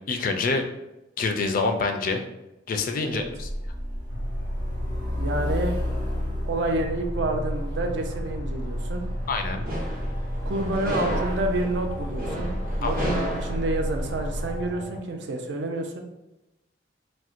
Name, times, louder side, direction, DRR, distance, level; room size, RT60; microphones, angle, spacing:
voice 1, 0.1-0.6 1.2-2.2 2.7-3.5 9.3-9.6 12.8-12.9, left 4 dB, 50° left, 6 dB, 0.3 m, -26 dB
Truck, 3.4-14.6, equal, 25° right, 0.6 m, -31 dB
sound 1, 4.1-15.0, left 2 dB, 90° left, 0.6 m, -41 dB
voice 2, 5.1-5.8 6.5-9.0 10.4-16.0, right 2 dB, 65° right, 4 dB, 0.4 m, -29 dB
sound 2, 9.2-14.4, equal, 50° right, 0.9 m, -34 dB
4.2 x 2.1 x 2.4 m, 0.95 s
head